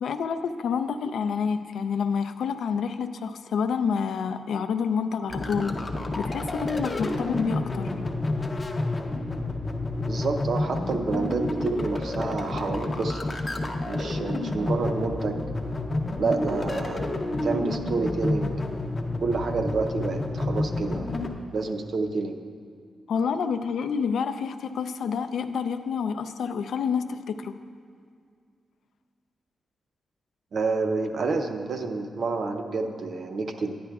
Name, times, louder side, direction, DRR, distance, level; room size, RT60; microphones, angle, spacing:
voice 1, 0.0-5.8 6.2-7.9 23.1-27.5, left 6 dB, 75° left, 9 dB, 0.3 m, -28 dB
sound 1, 5.3-21.3, left 2 dB, 25° left, 0.5 m, -29 dB
voice 2, 10.0-13.2 13.8-15.4 16.2-18.5 19.2-21.1 21.5-22.4 30.5-33.8, right 3 dB, 50° right, 6 dB, 0.5 m, -28 dB
10.5 x 10.0 x 2.3 m, 2.2 s
wide cardioid pair, 170°, 0 cm